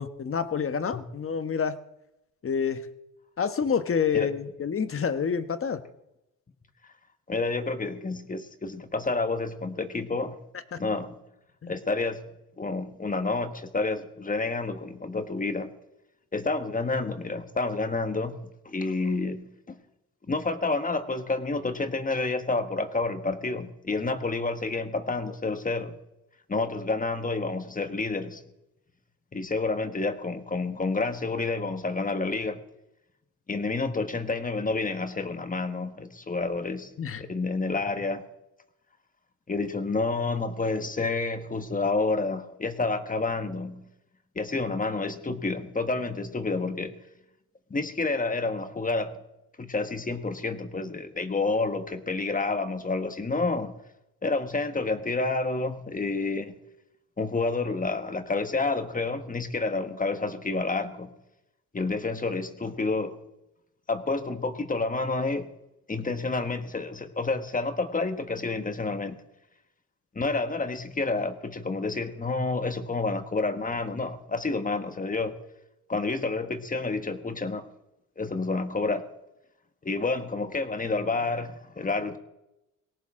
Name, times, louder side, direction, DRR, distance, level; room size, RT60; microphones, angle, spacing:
voice 1, 0.0-1.8 2.4-2.9 3.4-5.8 11.6-11.7 37.0-37.2, left 6 dB, 40° left, 1.3 m, -28 dB
voice 2, 7.3-10.4 10.8-11.2 11.7-12.3 12.6-15.7 16.3-19.8 20.3-25.9 26.5-28.4 29.3-32.6 33.5-36.9 37.2-38.3 39.5-43.8 44.3-47.0 47.7-49.2 49.6-53.7 54.2-56.6 57.2-61.1 61.7-63.2 63.9-65.5 65.9-69.2 70.1-75.4 75.9-77.7 78.2-79.1 79.8-82.2, left 3 dB, 25° left, 1.5 m, -29 dB
19.5 x 17.5 x 3.8 m
cardioid pair, 85°, 33 cm